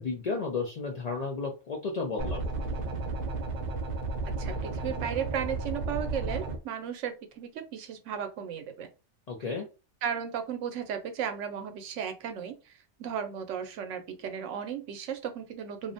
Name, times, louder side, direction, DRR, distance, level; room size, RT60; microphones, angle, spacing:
voice 1, 0.0-2.6 9.3-9.6, left 4 dB, 60° left, -1 dB, 0.4 m, -33 dB
sound 1, 2.2-6.6, right 3 dB, 65° right, 0.4 m, -33 dB
voice 2, 4.4-8.9 10.0-12.7 13.0-15.9, right 8 dB, 90° right, 7 dB, 0.9 m, -35 dB
2.5 x 2.1 x 2.5 m, 0.29 s
omnidirectional pair, 1.2 m